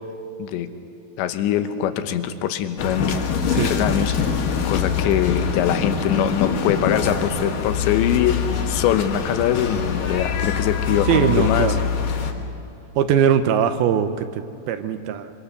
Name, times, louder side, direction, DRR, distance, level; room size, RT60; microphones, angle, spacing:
voice 1, 0.4-0.7 1.2-3.3 3.6-4.1 4.6-11.8, left 10 dB, 90° left, 9 dB, 3.3 m, -23 dB
sound 1, 2.8-12.3, left 6 dB, 60° left, 2.9 m, -24 dB
voice 2, 11.1-11.8 13.0-15.3, right 9 dB, 75° right, 10 dB, 2.4 m, -21 dB
25.5 x 25.0 x 6.7 m, 2.7 s
omnidirectional pair, 5.0 m